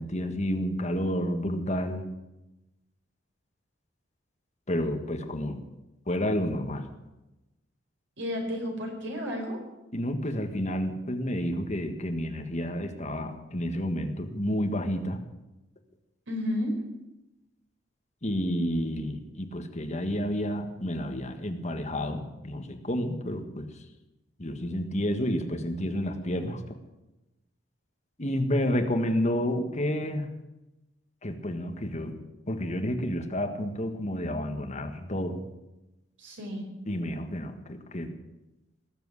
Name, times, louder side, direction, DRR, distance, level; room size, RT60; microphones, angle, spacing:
voice 1, 0.0-2.0 4.7-5.6 6.1-6.9 9.9-15.2 18.2-23.7 24.4-26.6 28.2-30.3 31.2-32.2 32.5-35.4 36.9-38.1, equal, 40° left, 5 dB, 1.7 m, -30 dB
voice 2, 8.2-9.6 16.3-16.7 36.2-36.6, left 1 dB, 80° right, 1 dB, 5.1 m, -32 dB
18.5 x 8.0 x 9.8 m, 0.98 s
head